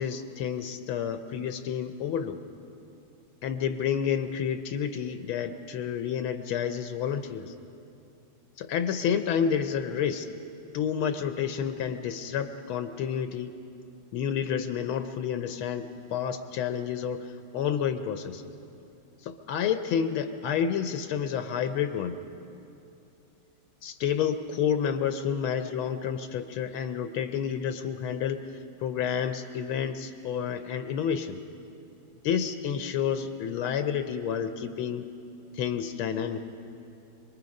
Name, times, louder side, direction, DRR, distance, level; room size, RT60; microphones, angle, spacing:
voice 1, 0.0-2.4 3.4-7.5 8.6-10.3 10.7-13.5 14.1-18.4 19.2-22.2 23.8-31.4 32.2-35.1 35.5-36.4, left 8 dB, 80° left, 9 dB, 1.5 m, -30 dB
26.5 x 21.0 x 5.3 m, 2.8 s
omnidirectional pair, 2.3 m